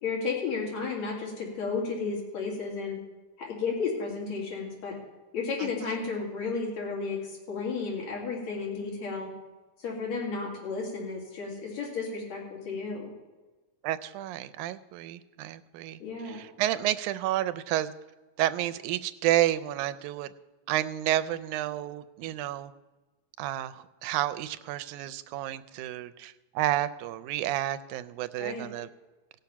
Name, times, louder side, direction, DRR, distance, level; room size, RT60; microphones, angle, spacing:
voice 1, 0.0-3.0 3.4-5.0 5.3-9.3 9.8-13.1 16.0-16.5 28.4-28.7, left 4 dB, 65° left, -2 dB, 3.8 m, -33 dB
voice 2, 5.6-6.0 13.8-17.9 18.4-20.3 20.7-22.7 23.4-28.9, right 13 dB, 85° right, 13 dB, 2.0 m, -30 dB
17.0 x 6.6 x 5.8 m, 1.2 s
omnidirectional pair, 3.4 m